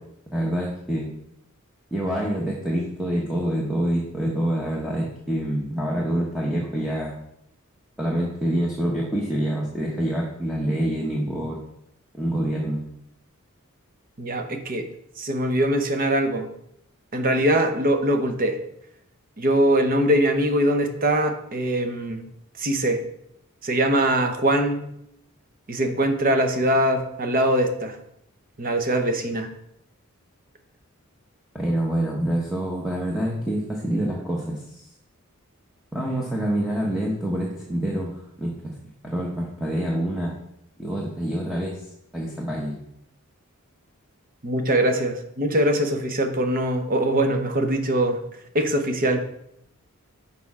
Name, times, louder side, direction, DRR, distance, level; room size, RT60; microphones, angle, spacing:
voice 1, 0.3-1.1 1.9-7.2 8.0-11.6 12.2-12.8 31.5-34.8 35.9-38.7 39.0-40.3 40.8-41.8 42.1-42.8, right 1 dB, ahead, -4 dB, 0.9 m, -26 dB
voice 2, 14.2-14.9 15.2-16.5 17.1-18.6 19.4-22.2 22.6-23.0 23.6-24.9 25.7-27.9 28.6-29.5 44.4-48.2 48.5-49.2, right 1 dB, 40° right, 6 dB, 0.8 m, -22 dB
6.8 x 4.2 x 4.8 m, 0.76 s
head